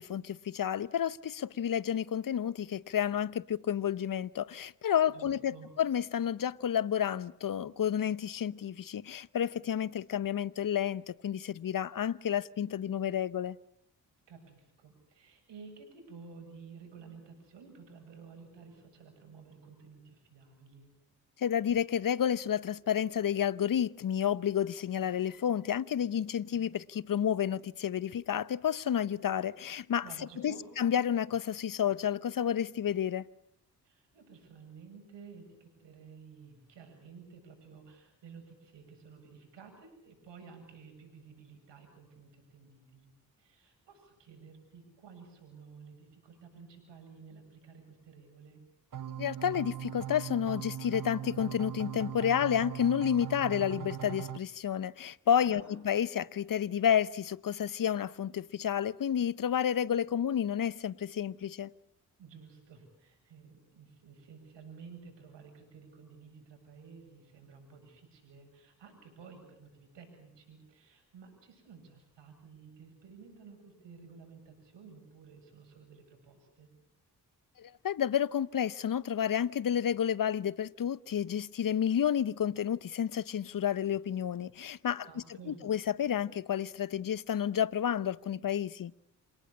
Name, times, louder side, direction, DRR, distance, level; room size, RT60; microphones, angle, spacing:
voice 1, 0.0-13.6 21.4-30.1 30.4-33.3 49.2-61.7 77.6-85.1 85.5-88.9, left 9 dB, 50° left, 0.9 m, -30 dB
voice 2, 5.1-5.7 14.3-20.9 30.0-30.7 33.8-43.1 43.4-48.6 55.3-55.7 62.2-76.7 85.0-85.6, right 5 dB, 75° right, 7.8 m, -53 dB
sound 1, 48.9-54.4, right 10 dB, 45° right, 1.0 m, -40 dB
27.0 x 19.0 x 8.6 m
hypercardioid pair, 45°, 44 cm